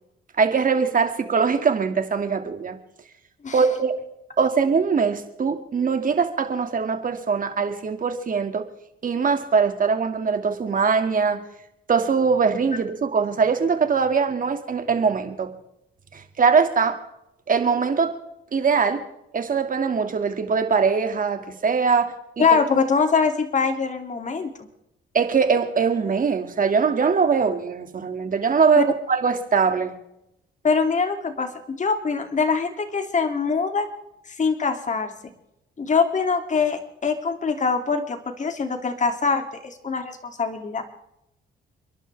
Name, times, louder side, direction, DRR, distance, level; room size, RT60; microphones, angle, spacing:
voice 1, 0.4-2.8 3.5-3.9 4.4-8.7 9.0-11.4 11.9-15.5 16.1-17.0 17.5-18.1 18.5-19.0 19.3-22.5 25.1-29.9, right 5 dB, 45° right, 7 dB, 2.3 m, -22 dB
voice 2, 22.4-24.5 28.8-28.9 30.6-33.9 34.3-35.1 35.8-40.8, left 5 dB, 40° left, 5 dB, 2.8 m, -23 dB
30.0 x 11.5 x 3.5 m, 0.84 s
cardioid pair, 90°, 20 cm